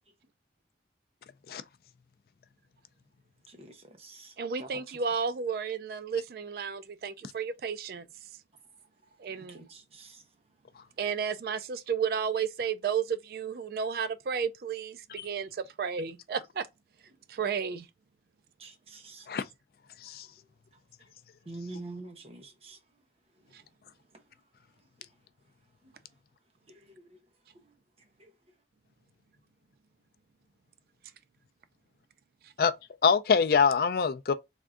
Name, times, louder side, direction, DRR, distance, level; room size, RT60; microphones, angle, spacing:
voice 1, 3.5-4.3 4.6-4.7 9.5-10.2 18.6-19.3 21.5-22.8, right 2 dB, 35° right, 0.8 m, -45 dB
voice 2, 4.4-8.0 9.2-9.6 11.0-16.7 17.3-17.9 23.5-23.6, right 6 dB, 55° right, 0.3 m, -32 dB
voice 3, 33.0-34.3, left 6 dB, 55° left, 0.4 m, -24 dB
3.5 x 2.5 x 3.6 m
head